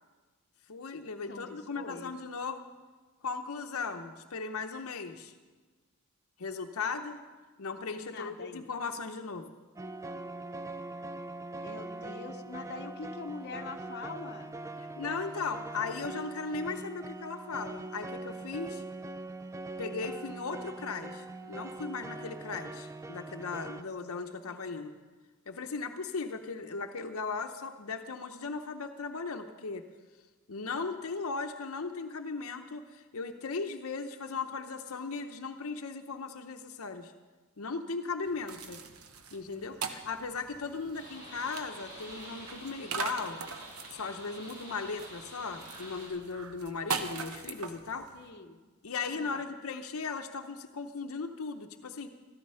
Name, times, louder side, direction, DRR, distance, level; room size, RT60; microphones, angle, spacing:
voice 1, 0.7-2.6 3.2-5.3 6.4-7.2 7.6-9.5 14.8-18.8 19.8-24.9 25.5-29.8 30.5-37.1 37.6-38.8 39.3-43.4 43.9-48.1 48.8-52.1, left 4 dB, 75° left, 6 dB, 0.8 m, -37 dB
voice 2, 1.3-2.1 8.0-8.7 11.6-14.6 24.4-24.6 48.1-48.6 49.1-49.4, left 4 dB, 50° left, 4 dB, 0.9 m, -44 dB
sound 1, 9.8-23.8, right 2 dB, 15° right, 0.3 m, -42 dB
sound 2, 38.3-48.3, right 5 dB, 80° right, 1.0 m, -42 dB
sound 3, 40.9-46.1, right 1 dB, 40° right, 5.3 m, -48 dB
14.0 x 13.0 x 5.6 m, 1.3 s
head